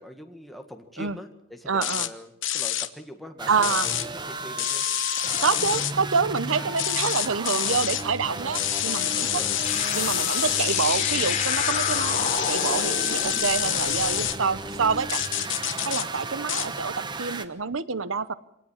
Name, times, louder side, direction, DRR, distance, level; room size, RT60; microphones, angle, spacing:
voice 1, 0.0-4.8 6.5-6.9 9.2-9.6 10.4-10.8, left 1 dB, ahead, 4 dB, 1.8 m, -43 dB
voice 2, 1.7-2.1 3.5-3.9 5.4-9.4 9.9-15.2 15.7-18.3, right 5 dB, 85° right, 15 dB, 0.9 m, -27 dB
sound 1, 1.8-2.1 2.4-2.9 3.6-4.1 4.6-5.9 6.8-8.0 8.5-14.4 15.1-16.1 16.5-16.7, left 13 dB, 75° left, 1.0 m, -27 dB
sound 2, 3.4-17.4, right 3 dB, 20° right, 1.0 m, -35 dB
sound 3, 9.6-14.9, left 5 dB, 35° left, 3.5 m, -31 dB
24.0 x 18.5 x 7.4 m, 0.81 s
head